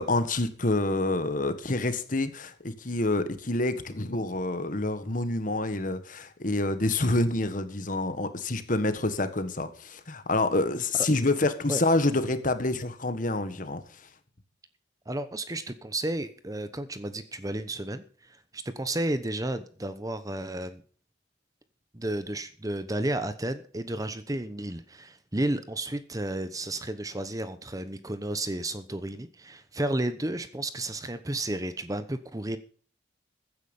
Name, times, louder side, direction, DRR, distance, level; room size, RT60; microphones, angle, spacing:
voice 1, 0.0-13.8, left 2 dB, 45° left, 10 dB, 1.6 m, -27 dB
voice 2, 15.1-20.8 21.9-32.6, right 1 dB, 20° right, 11 dB, 0.9 m, -32 dB
15.5 x 9.8 x 5.5 m, 0.43 s
head